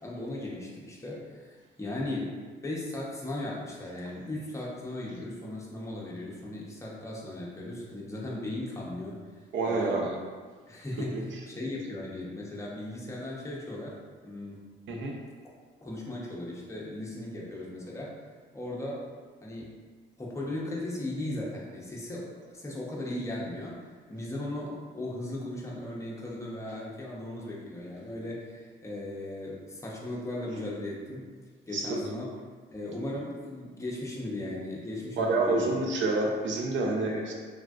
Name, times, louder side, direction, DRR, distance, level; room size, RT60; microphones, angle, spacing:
voice 1, 0.0-2.2 2.6-9.1 9.6-10.2 10.7-13.9 14.2-14.6 15.8-18.2 18.5-19.1 19.4-19.7 20.2-23.8 24.1-31.4 31.7-32.3 32.7-35.9 37.0-37.3, left 1 dB, 15° left, -4 dB, 0.7 m, -37 dB
voice 2, 9.5-10.1 14.9-15.1 31.7-32.0 35.2-37.3, right 3 dB, 70° right, 0 dB, 0.6 m, -28 dB
3.3 x 2.4 x 2.3 m, 1.5 s
cardioid pair, 90°, 20 cm